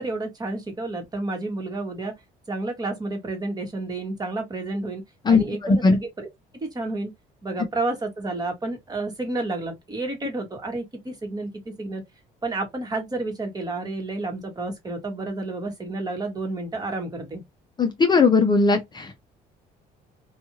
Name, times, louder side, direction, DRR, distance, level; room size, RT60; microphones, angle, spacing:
voice 1, 0.0-2.1 2.5-5.0 5.3-6.3 6.6-7.1 7.4-12.0 12.4-17.4, right 2 dB, 25° right, 1.2 m, -30 dB
voice 2, 5.3-6.0 17.8-19.1, left 4 dB, 25° left, 0.5 m, -19 dB
2.5 x 2.3 x 2.9 m
cardioid pair, 110°, 17 cm